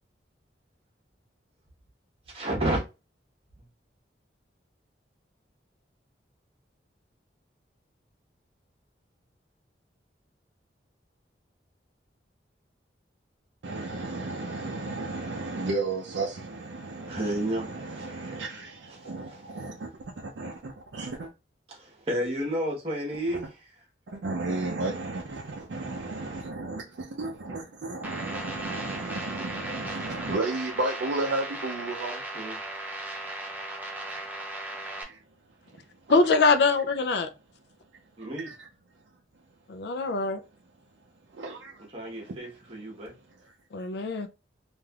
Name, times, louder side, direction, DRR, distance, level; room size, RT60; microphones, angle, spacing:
voice 1, 2.3-2.8 3.6-3.7 17.1-18.4 18.9-19.6 21.7-23.7 32.3-32.6 38.2-38.5 41.9-43.1, right 1 dB, 30° right, 1.1 m, -32 dB
voice 2, 13.6-19.9 20.2-21.3 24.1-32.2 35.0-35.2 38.2-38.6 41.3-41.8 42.1-42.3, right 2 dB, 70° right, 0.5 m, -33 dB
sound 1, 28.0-35.0, right 1 dB, 10° right, 0.4 m, -37 dB
voice 3, 36.1-37.3 39.7-40.4 43.7-44.3, left 3 dB, 65° left, 0.4 m, -23 dB
3.3 x 2.5 x 2.3 m
head